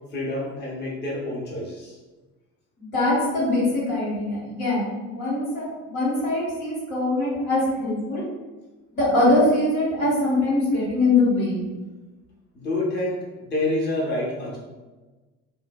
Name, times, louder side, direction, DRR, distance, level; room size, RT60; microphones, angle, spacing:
voice 1, 0.1-1.9 12.5-13.2 13.5-14.6, left 2 dB, 25° left, -5 dB, 0.8 m, -27 dB
voice 2, 2.8-8.3 8.9-11.6, left 2 dB, 75° left, -8 dB, 1.4 m, -23 dB
2.7 x 2.5 x 2.2 m, 1.2 s
figure-of-eight pair, 55°, 42 cm